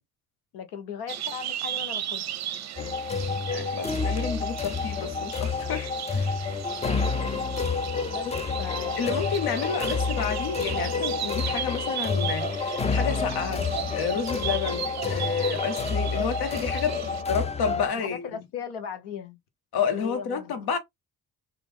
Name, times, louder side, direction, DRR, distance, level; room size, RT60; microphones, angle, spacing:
voice 1, 0.5-2.2 8.1-8.3 8.6-9.2 16.1-16.2 17.9-19.4 19.9-20.7, left 8 dB, 80° left, 0.9 m, -38 dB
sound 1, 1.1-17.2, right 11 dB, 45° right, 0.5 m, -36 dB
Funny Background Music Orchestra, 2.8-17.9, left 4 dB, 15° left, 0.4 m, -29 dB
voice 2, 3.5-6.3 8.2-8.3 9.0-18.4 19.7-20.8, left 6 dB, 65° left, 1.3 m, -30 dB
3.0 x 2.5 x 3.5 m
supercardioid pair, 55°, 40 cm